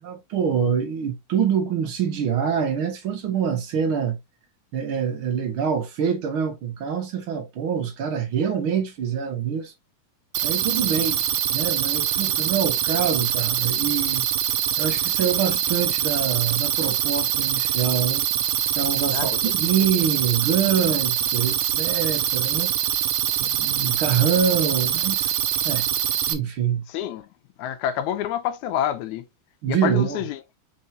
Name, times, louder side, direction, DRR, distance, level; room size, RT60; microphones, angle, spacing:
voice 1, 0.0-4.2 4.7-9.7 10.4-11.2 11.5-14.2 14.8-18.2 18.8-22.7 23.4-25.3 25.6-25.9 26.3-26.8 29.6-30.2, right 7 dB, 60° right, 1.5 m, -25 dB
sound 1, 10.3-26.3, right 11 dB, 85° right, 2.2 m, -24 dB
voice 2, 10.8-11.1 19.1-19.5 26.9-27.3 27.6-29.3 29.7-30.6, left 10 dB, 80° left, 1.9 m, -28 dB
4.6 x 4.5 x 2.6 m
omnidirectional pair, 3.6 m